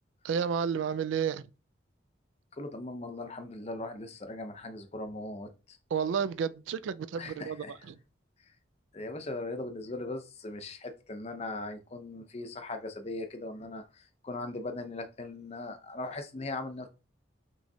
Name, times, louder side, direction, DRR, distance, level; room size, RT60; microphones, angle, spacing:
voice 1, 0.2-1.5 5.9-8.0, right 7 dB, 85° right, 0.3 m, -31 dB
voice 2, 2.6-5.8 7.2-7.7 8.9-16.9, left 2 dB, 35° left, 0.6 m, -39 dB
5.8 x 3.1 x 2.7 m
head